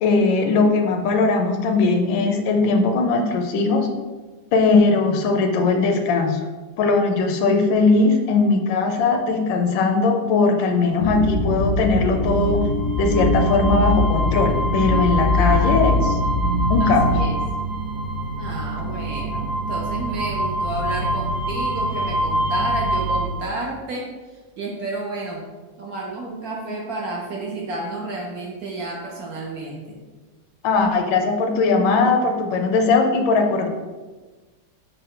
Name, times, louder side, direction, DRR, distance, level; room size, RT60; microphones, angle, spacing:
voice 1, 0.0-3.9 4.5-6.4 6.8-12.6 13.0-16.2 16.7-17.1 30.6-33.7, left 3 dB, 80° left, 4 dB, 1.3 m, -19 dB
sound 1, 11.0-17.2, left 1 dB, 55° left, 0.6 m, -22 dB
sound 2, 12.2-23.3, right 1 dB, 45° right, 1.0 m, -26 dB
voice 2, 15.4-15.8 16.8-17.4 18.3-25.4 25.8-30.0, right 2 dB, 65° right, -2 dB, 0.9 m, -31 dB
5.4 x 2.1 x 3.6 m, 1.3 s
omnidirectional pair, 2.0 m